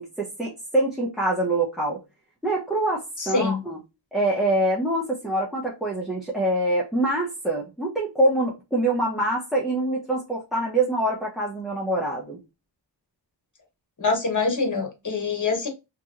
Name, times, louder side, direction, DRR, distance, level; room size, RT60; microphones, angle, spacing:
voice 1, 0.0-2.0 2.4-3.8 4.1-12.4, right 1 dB, ahead, 0.7 m, -25 dB
voice 2, 3.2-3.6 14.0-15.7, left 4 dB, 40° left, 1.1 m, -24 dB
3.0 x 2.8 x 2.4 m
wide cardioid pair, 100°, 44 cm